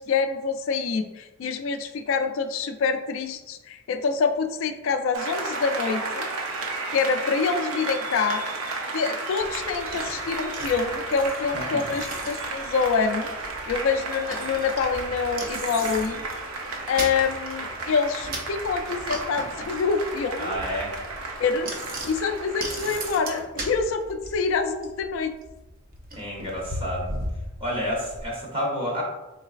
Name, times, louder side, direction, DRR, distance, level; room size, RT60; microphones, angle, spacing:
voice 1, 0.0-6.3 6.9-8.4 8.9-13.3 13.7-16.2 16.9-20.6 21.4-21.7 22.1-25.3, left 5 dB, 60° left, 7 dB, 0.3 m, -26 dB
Applause, 5.1-23.4, right 3 dB, 75° right, 0.7 m, -33 dB
Bicycle, 9.4-28.3, right 1 dB, 40° right, 0.5 m, -38 dB
voice 2, 11.4-12.0 20.4-20.9 26.2-27.2 27.6-29.0, equal, 25° right, -3 dB, 1.0 m, -30 dB
4.0 x 3.8 x 2.4 m, 1.1 s
head